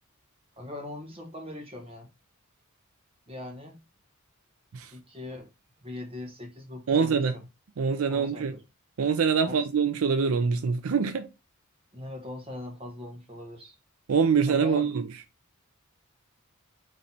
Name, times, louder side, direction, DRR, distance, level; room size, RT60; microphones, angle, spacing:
voice 1, 0.6-2.1 3.3-3.8 4.9-5.5 5.8-7.4 8.1-8.6 9.4-9.6 11.9-13.7 14.5-14.9, left 2 dB, 25° right, 1.3 m, -40 dB
voice 2, 6.9-7.3 7.8-8.5 9.0-11.3 14.1-15.1, right 6 dB, 75° right, 0.5 m, -24 dB
4.2 x 3.2 x 3.9 m
head